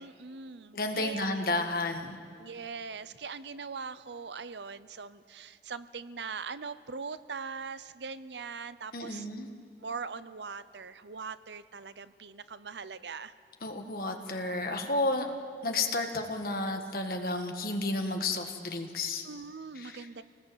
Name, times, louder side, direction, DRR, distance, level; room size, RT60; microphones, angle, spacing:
voice 1, 0.0-1.3 2.3-9.3 9.8-13.3 19.2-20.2, right 5 dB, 80° right, 14 dB, 0.8 m, -41 dB
voice 2, 0.7-2.2 8.9-9.5 13.6-15.3 15.6-19.2 19.8-20.1, left 2 dB, 55° left, 4 dB, 1.9 m, -32 dB
27.0 x 19.5 x 8.0 m, 2.4 s
head